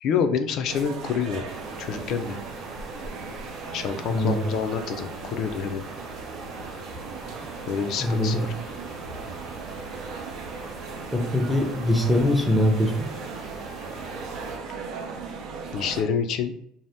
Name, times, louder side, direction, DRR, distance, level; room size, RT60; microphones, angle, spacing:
voice 1, 0.0-1.4 1.8-2.4 3.7-5.8 7.7-8.5 15.7-16.5, left 6 dB, 60° left, 8 dB, 0.4 m, -27 dB
sound 1, 0.7-16.0, right 4 dB, 65° right, 0.5 m, -38 dB
sound 2, 1.5-14.6, right 2 dB, 50° right, 0.9 m, -42 dB
voice 2, 4.1-4.5 8.0-8.5 11.1-13.1, left 1 dB, ahead, 2 dB, 0.5 m, -22 dB
2.7 x 2.0 x 3.3 m, 0.71 s
cardioid pair, 120°, 0 cm